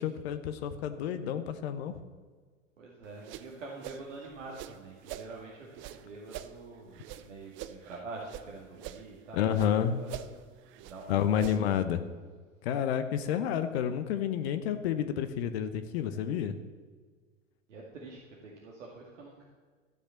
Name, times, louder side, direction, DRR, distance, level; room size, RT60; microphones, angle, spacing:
voice 1, 0.0-2.0 9.3-10.0 11.1-12.0 12.6-16.6, left 9 dB, 50° left, 10 dB, 0.9 m, -30 dB
voice 2, 2.8-9.7 9.9-11.7 17.7-19.5, right 3 dB, 65° right, -2 dB, 2.1 m, -46 dB
sound 1, 3.0-5.3 5.7-8.5 8.7-9.7 10.0-11.8, right 12 dB, 30° right, 0.7 m, -45 dB
13.0 x 6.8 x 8.1 m, 1.5 s
figure-of-eight pair, 85°, 39 cm